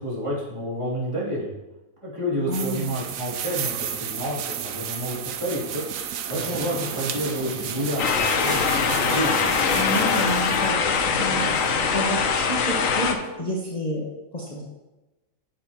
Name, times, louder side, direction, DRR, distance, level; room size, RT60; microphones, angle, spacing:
voice 1, 0.0-1.5 2.0-5.8 6.3-9.5, equal, 20° right, -8 dB, 3.0 m, -29 dB
voice 2, 2.5-2.9 9.7-14.0 14.3-14.6, equal, 30° left, -4 dB, 1.2 m, -30 dB
sound 1, 2.5-10.7, right 8 dB, 75° right, 1.0 m, -33 dB
sound 2, 6.3-12.0, right 2 dB, 55° right, 1.5 m, -37 dB
sound 3, 8.0-13.1, left 5 dB, 70° left, 1.2 m, -22 dB
9.9 x 7.2 x 2.9 m, 1.0 s
omnidirectional pair, 1.5 m